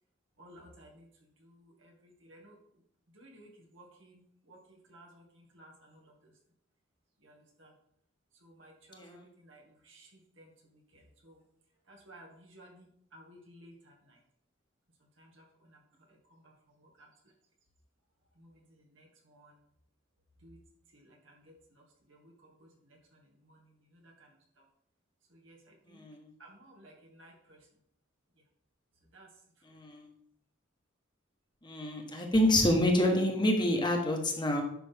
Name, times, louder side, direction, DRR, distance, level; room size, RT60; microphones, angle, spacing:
voice 1, 0.4-1.1 1.4-2.6 3.1-4.2 4.5-4.6 4.9-6.3 7.2-7.7 8.4-10.5 10.9-11.4 11.9-14.2 15.2-15.8 16.1-16.5 16.8-17.1 18.4-19.5 20.4-20.6 20.9-21.8 22.1-24.3 24.6-24.7 25.3-26.0 26.4-27.6 29.1-29.3, right 1 dB, 75° right, 0 dB, 2.1 m, -57 dB
voice 2, 8.9-9.2 25.9-26.2 29.7-30.0 31.6-34.6, left 1 dB, 25° left, 2 dB, 1.3 m, -27 dB
10.5 x 6.1 x 3.6 m, 0.71 s
head